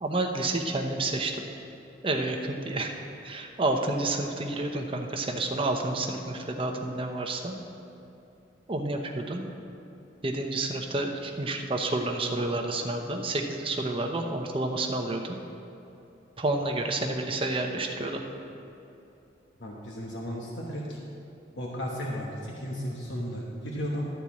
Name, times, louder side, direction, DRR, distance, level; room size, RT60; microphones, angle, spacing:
voice 1, 0.0-1.4 2.0-2.9 3.2-7.5 8.7-9.4 10.2-15.4 16.4-18.2, right 2 dB, 30° right, 3 dB, 0.8 m, -29 dB
voice 2, 19.6-21.0 21.5-24.1, equal, 80° left, -3 dB, 1.1 m, -34 dB
12.5 x 4.5 x 8.4 m, 2.8 s
head